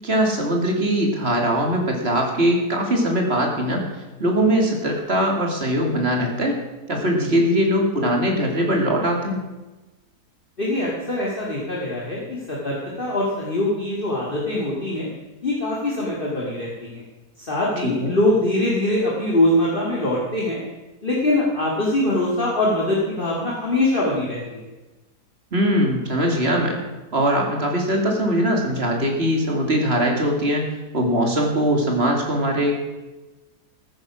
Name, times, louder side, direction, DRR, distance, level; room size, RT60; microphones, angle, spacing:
voice 1, 0.0-6.6 6.9-9.4 17.8-18.2 25.5-26.8 27.1-32.8, equal, 40° right, 2 dB, 2.7 m, -21 dB
voice 2, 10.6-15.1 15.4-17.0 17.4-20.6 21.0-24.7, left 1 dB, 35° left, -4 dB, 2.4 m, -23 dB
14.5 x 9.7 x 6.3 m, 1.1 s
omnidirectional pair, 1.7 m